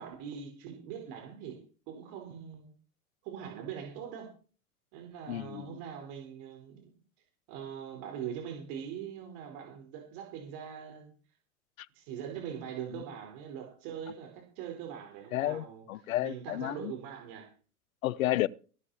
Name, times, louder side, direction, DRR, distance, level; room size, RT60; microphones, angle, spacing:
voice 1, 0.0-2.7 3.2-4.3 4.9-6.9 7.5-11.1 11.9-15.8 16.2-17.5, right 8 dB, 50° right, 4.7 m, -42 dB
voice 2, 5.3-5.8 15.3-16.9 18.0-18.5, left 15 dB, 65° left, 0.9 m, -31 dB
16.0 x 12.0 x 4.3 m
hypercardioid pair, 100°, 45 cm